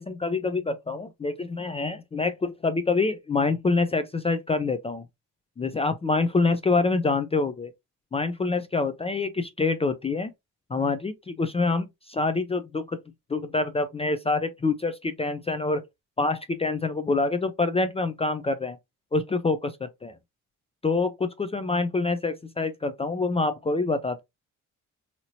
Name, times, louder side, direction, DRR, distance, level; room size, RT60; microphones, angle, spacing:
voice 1, 0.0-5.0 5.6-7.7 8.1-10.3 10.7-13.0 13.3-15.8 16.2-18.8 19.1-20.1 20.8-24.2, left 3 dB, 20° left, 0.3 m, -26 dB
2.8 x 2.8 x 2.6 m
cardioid pair, 85°, 32 cm